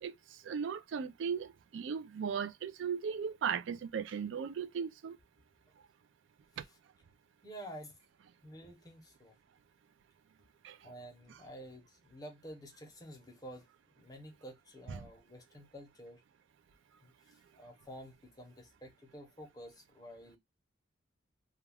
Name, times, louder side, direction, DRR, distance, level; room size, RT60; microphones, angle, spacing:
voice 1, 0.0-5.2 6.6-6.7 10.6-10.8 11.3-11.4 14.9-15.1, right 7 dB, 75° right, 0.3 m, -37 dB
voice 2, 7.4-8.0 8.4-9.3 10.8-13.7 14.0-16.2 17.0-20.4, equal, 20° left, 0.7 m, -50 dB
2.3 x 2.2 x 3.3 m
head